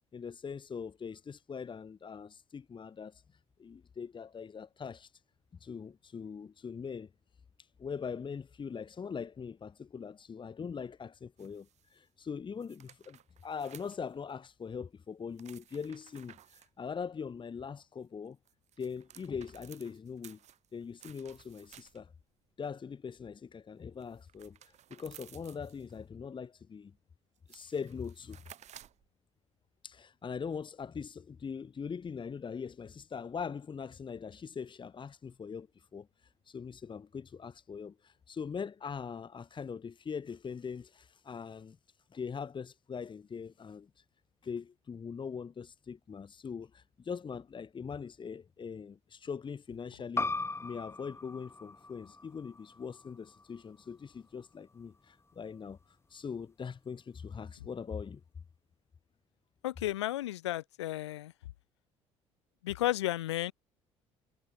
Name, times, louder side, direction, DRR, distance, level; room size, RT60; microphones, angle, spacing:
voice 1, 0.1-3.2 3.6-5.1 5.6-7.1 7.8-18.4 18.8-20.4 20.7-22.1 22.6-24.6 24.9-26.9 27.5-28.4 29.8-35.7 35.9-36.1 36.5-41.8 42.1-43.9 44.4-50.3 50.6-55.8 56.1-58.2, left 6 dB, 35° left, 2.8 m, -41 dB
sound 1, 11.4-12.0 12.6-14.3 15.3-16.7 18.3-22.2 24.0-26.0 27.0-27.1 27.4-29.1, right 11 dB, 55° right, 6.6 m, -56 dB
sound 2, 50.2-55.3, left 3 dB, 20° left, 3.1 m, -40 dB
voice 2, 59.6-61.3 62.6-63.5, left 15 dB, 80° left, 0.7 m, -33 dB
figure-of-eight pair, 55°, 14 cm